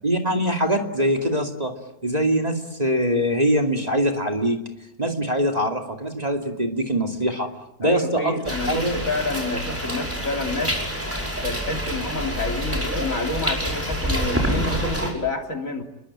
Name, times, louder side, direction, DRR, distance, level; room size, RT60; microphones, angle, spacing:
voice 1, 0.0-1.7 2.0-4.6 5.0-7.5 7.8-8.4 8.7-9.0, equal, 25° right, 3 dB, 2.5 m, -23 dB
voice 2, 7.8-10.8 11.4-15.8, left 2 dB, 60° left, 4 dB, 3.3 m, -28 dB
sound 1, 8.4-15.1, equal, 10° right, 5.5 m, -27 dB
29.0 x 22.5 x 8.8 m, 0.88 s
omnidirectional pair, 1.6 m